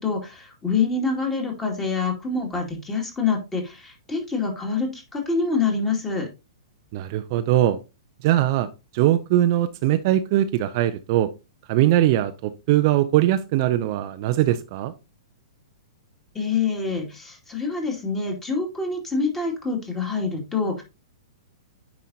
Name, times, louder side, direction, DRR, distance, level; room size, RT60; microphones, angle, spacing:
voice 1, 0.0-6.3 16.3-20.8, left 4 dB, 15° left, 1 dB, 2.2 m, -26 dB
voice 2, 6.9-7.8 8.2-11.3 11.7-14.9, right 13 dB, 45° right, 10 dB, 0.5 m, -21 dB
9.1 x 5.0 x 2.8 m, 0.27 s
figure-of-eight pair, 110°, 3 cm